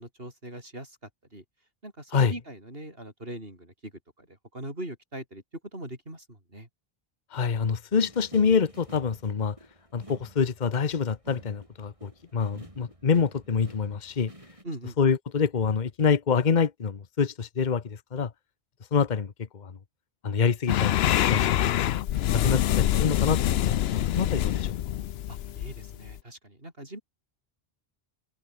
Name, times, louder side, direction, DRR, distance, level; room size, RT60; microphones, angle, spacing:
voice 1, 0.0-1.4 1.8-3.9 4.2-5.4 5.7-6.7 14.6-15.0 25.3-27.0, right 1 dB, 70° right, 7.3 m, -41 dB
voice 2, 7.3-9.6 9.9-14.3 15.0-18.3 18.9-19.7 20.2-21.9 22.3-24.7, left 6 dB, 45° left, 1.2 m, -26 dB
sound 1, 7.9-14.6, right 1 dB, 30° right, 5.7 m, -50 dB
sound 2, 20.7-26.2, left 12 dB, 85° left, 0.8 m, -25 dB
omnidirectional pair, 1.0 m